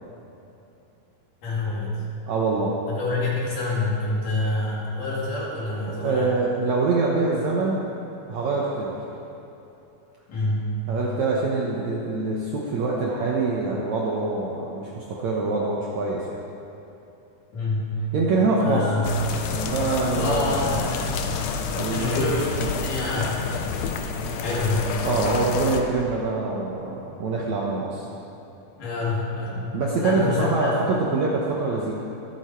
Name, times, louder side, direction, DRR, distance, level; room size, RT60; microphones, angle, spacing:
voice 1, 1.4-2.0 2.9-6.3 10.3-10.7 17.5-18.0 18.6-19.0 20.2-21.3 21.9-22.5 22.8-23.5 24.4-24.9 28.8-29.7 30.0-30.8, left 2 dB, 60° left, -6 dB, 4.2 m, -27 dB
voice 2, 2.3-2.8 5.9-7.8 8.3-9.0 10.9-16.4 18.1-18.9 19.4-20.8 21.8-22.2 22.6-22.7 25.0-28.1 29.7-31.9, right 3 dB, 65° right, -3 dB, 1.9 m, -25 dB
sound 1, 19.0-25.8, left 5 dB, 90° left, 1.5 m, -29 dB
23.5 x 8.0 x 4.5 m, 2.9 s
omnidirectional pair, 4.4 m